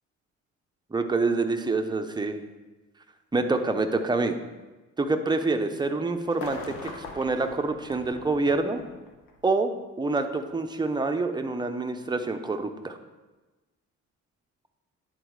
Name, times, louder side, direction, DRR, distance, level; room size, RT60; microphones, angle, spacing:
voice 1, 0.9-2.5 3.3-4.3 5.0-8.8 9.4-9.7 10.0-13.0, right 3 dB, 15° right, 6 dB, 0.7 m, -26 dB
sound 1, 6.3-9.4 10.5-10.6, left 3 dB, 85° left, 1.2 m, -41 dB
9.8 x 4.1 x 4.8 m, 1.2 s
cardioid pair, 90°, 30 cm